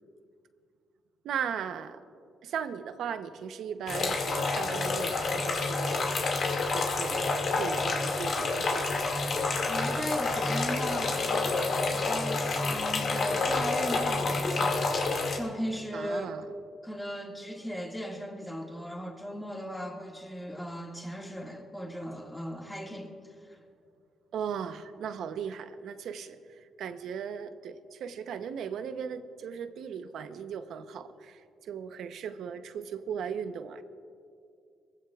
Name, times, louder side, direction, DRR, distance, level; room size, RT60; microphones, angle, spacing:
voice 1, 1.2-2.0 2.4-6.1 6.7-9.2 15.9-16.4 24.3-26.4 26.8-33.8, right 7 dB, 75° right, 10 dB, 0.8 m, -37 dB
sound 1, 3.9-15.4, left 3 dB, 55° left, 2.2 m, -29 dB
voice 2, 9.7-15.0 15.3-16.4 16.8-23.1, equal, 5° left, 1 dB, 2.0 m, -37 dB
23.5 x 15.5 x 2.4 m, 2.4 s
cardioid pair, 90°, 0 cm